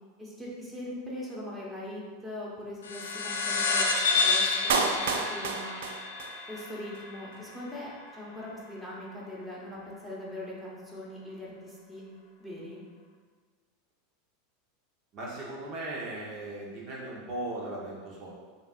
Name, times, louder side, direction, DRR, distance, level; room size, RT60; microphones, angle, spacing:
voice 1, 0.2-3.9 4.2-5.8 6.5-12.0 12.4-12.8, left 1 dB, 10° right, -5 dB, 1.3 m, -41 dB
sound 1, 2.8-7.7, left 4 dB, 80° left, 0.6 m, -29 dB
Clapping, 4.7-6.7 6.9-7.0, right 4 dB, 70° right, 0.4 m, -30 dB
voice 2, 15.1-18.3, right 1 dB, 45° right, -5 dB, 1.1 m, -37 dB
6.9 x 2.8 x 2.5 m, 1.5 s
hypercardioid pair, 90°, 0 cm